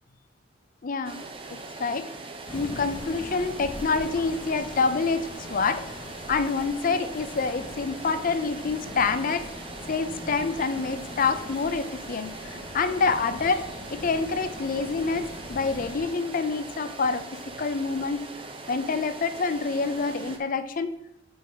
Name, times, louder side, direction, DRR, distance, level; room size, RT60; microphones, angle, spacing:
voice 1, 0.8-1.3 1.8-2.1 2.5-5.9 6.3-9.5 9.9-18.3 18.7-21.0, left 4 dB, 40° left, 11 dB, 0.5 m, -27 dB
sound 1, 1.0-20.4, right 3 dB, 25° right, 0.7 m, -41 dB
sound 2, 2.5-16.0, left 1 dB, 25° left, 0.9 m, -42 dB
5.5 x 4.7 x 5.4 m, 0.85 s
head